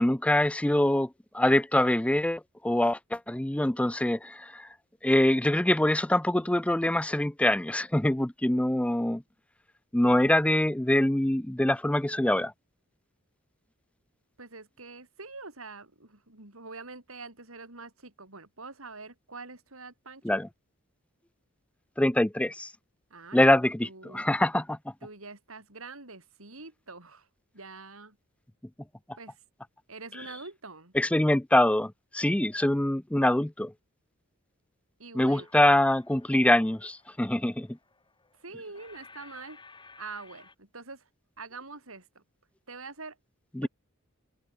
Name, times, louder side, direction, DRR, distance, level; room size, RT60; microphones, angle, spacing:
voice 1, 0.0-4.7 5.0-9.2 9.9-12.5 20.2-20.5 22.0-22.7 23.3-23.9 24.1-24.8 31.0-33.7 35.1-37.7 43.6-43.7, left 1 dB, 5° left, 0.5 m, -24 dB
voice 2, 14.4-20.4 23.1-24.3 25.0-27.3 27.5-28.2 29.2-29.4 29.9-30.9 35.0-35.5 38.4-39.6 40.0-41.1 41.4-42.2 42.7-43.2 43.6-43.7, right 3 dB, 80° right, 5.8 m, -45 dB
sound 1, 35.3-40.5, left 4 dB, 20° left, 5.8 m, -56 dB
head